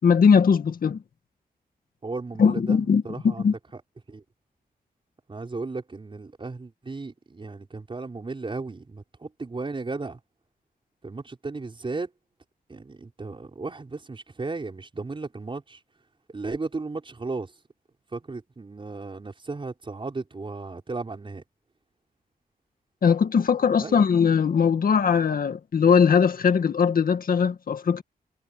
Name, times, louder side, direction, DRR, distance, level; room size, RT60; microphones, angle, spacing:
voice 1, 0.0-1.0 2.4-3.5 23.0-28.0, left 6 dB, 65° left, 1.9 m, -20 dB
voice 2, 2.0-3.8 4.1-4.2 5.3-10.2 11.0-12.1 12.7-15.8 16.3-17.5 18.1-21.4 23.8-24.1, right 3 dB, 35° right, 5.5 m, -35 dB
wide cardioid pair, 105°, 16 cm